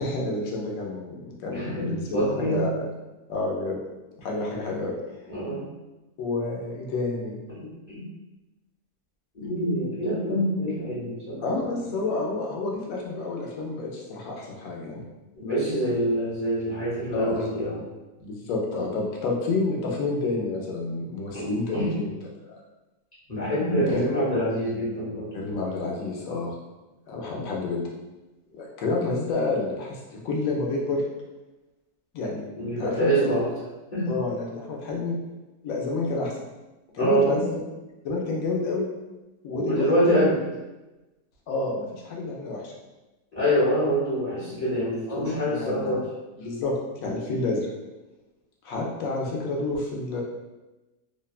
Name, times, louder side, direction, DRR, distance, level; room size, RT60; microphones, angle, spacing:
voice 1, 0.0-2.7 3.3-3.8 4.2-5.0 6.2-7.4 11.4-15.0 17.1-17.4 18.2-22.1 22.5-22.6 23.7-24.0 25.3-26.6 27.1-27.8 28.5-31.0 32.1-32.4 32.8-33.3 34.1-35.2 35.6-36.3 36.9-37.6 38.0-38.8 39.4-40.3 41.5-42.7 45.1-46.0 46.4-46.7 47.0-47.7 48.6-50.2, left 3 dB, 70° left, -1 dB, 0.9 m, -29 dB
voice 2, 1.5-2.6 5.3-5.7 7.5-8.1 9.3-11.4 15.4-17.8 21.3-21.9 23.3-25.4 32.6-33.4 33.9-34.1 37.0-37.3 39.5-40.4 43.3-46.0, equal, 35° left, -10 dB, 0.7 m, -25 dB
2.7 x 2.1 x 2.3 m, 1.1 s
omnidirectional pair, 1.7 m